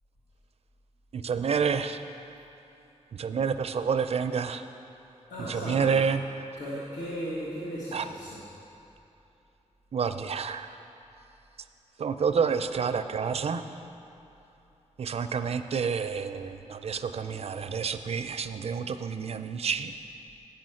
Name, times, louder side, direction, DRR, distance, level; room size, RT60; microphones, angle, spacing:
voice 1, 1.1-2.0 3.1-4.6 5.5-6.2 7.9-8.1 9.9-10.8 12.0-13.6 15.0-19.9, right 6 dB, 60° right, 9 dB, 0.4 m, -29 dB
voice 2, 5.3-5.9 6.6-8.4, equal, 85° left, -9 dB, 1.6 m, -36 dB
8.8 x 6.4 x 7.6 m, 2.9 s
wide cardioid pair, 130°, 12 cm